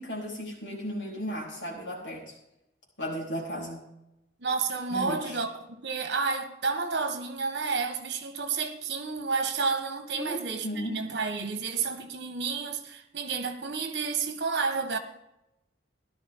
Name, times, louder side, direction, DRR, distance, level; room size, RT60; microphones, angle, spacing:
voice 1, 0.0-2.3 3.0-3.8 4.9-5.4 10.1-11.0, equal, 75° left, 4.2 m, -35 dB
voice 2, 4.4-5.5 5.8-15.0, right 4 dB, 65° right, 1.4 m, -30 dB
15.0 x 11.5 x 3.7 m
head